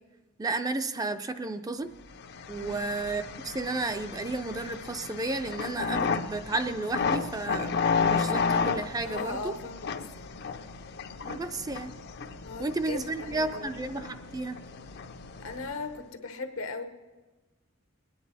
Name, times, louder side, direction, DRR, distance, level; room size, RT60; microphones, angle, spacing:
voice 1, 0.4-1.9 2.5-9.4 11.3-11.9 12.6-14.6, right 2 dB, 20° right, 8 dB, 0.4 m, -32 dB
sound 1, 2.1-16.0, left 5 dB, 55° left, 0.6 m, -33 dB
voice 2, 2.5-2.8 9.0-10.1 12.4-13.7 15.4-16.8, left 3 dB, 80° left, 7 dB, 1.0 m, -38 dB
20.5 x 9.6 x 4.1 m, 1.2 s
head